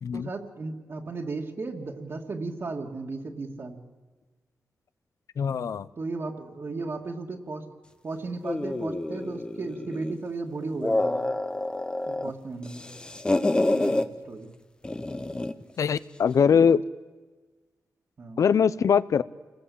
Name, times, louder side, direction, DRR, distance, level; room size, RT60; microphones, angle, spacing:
voice 1, 0.1-3.8 6.0-7.7 8.0-11.2 12.1-12.9 13.7-14.5 18.2-18.4, right 3 dB, 45° right, 1 dB, 2.3 m, -35 dB
voice 2, 5.4-5.9 15.8-16.8 18.4-19.2, left 7 dB, 65° left, 17 dB, 0.7 m, -22 dB
sound 1, 8.4-10.2 10.6-12.3 12.6-14.1 14.8-15.6, left 2 dB, 15° left, 1.0 m, -28 dB
29.0 x 20.5 x 8.6 m, 1.3 s
wide cardioid pair, 115°, 6 cm